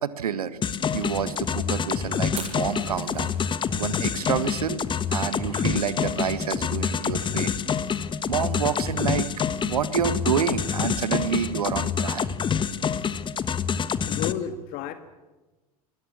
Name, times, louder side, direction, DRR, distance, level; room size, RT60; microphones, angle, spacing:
voice 1, 0.0-0.6 0.9-3.3 3.7-4.8 5.1-7.5 8.3-9.3 9.6-12.3, right 8 dB, 75° right, 14 dB, 1.5 m, -28 dB
sound 1, 0.6-14.3, left 7 dB, 25° left, 1.4 m, -27 dB
Fire, 2.3-12.0, right 5 dB, 35° right, 7.3 m, -48 dB
voice 2, 14.0-14.9, left 10 dB, 50° left, 9 dB, 1.9 m, -31 dB
27.5 x 22.0 x 7.4 m, 1.1 s
figure-of-eight pair, 75°, 19 cm